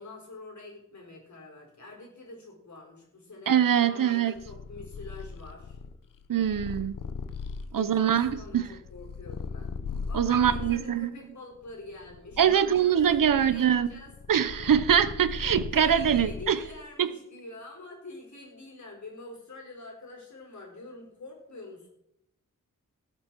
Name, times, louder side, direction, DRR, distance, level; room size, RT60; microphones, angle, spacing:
voice 1, 0.0-5.8 7.7-9.7 10.0-13.0 13.3-14.1 15.7-21.9, left 2 dB, 60° left, 0 dB, 4.3 m, -46 dB
voice 2, 3.5-4.3 6.3-7.0 7.7-8.7 10.1-11.1 12.4-13.9 14.3-16.6 17.0-17.1, right 9 dB, 85° right, 13 dB, 0.8 m, -23 dB
Purr, 4.3-10.9 11.5-16.8, left 5 dB, 85° left, 0.9 m, -39 dB
17.5 x 7.3 x 4.6 m, 0.78 s
wide cardioid pair, 130°, 32 cm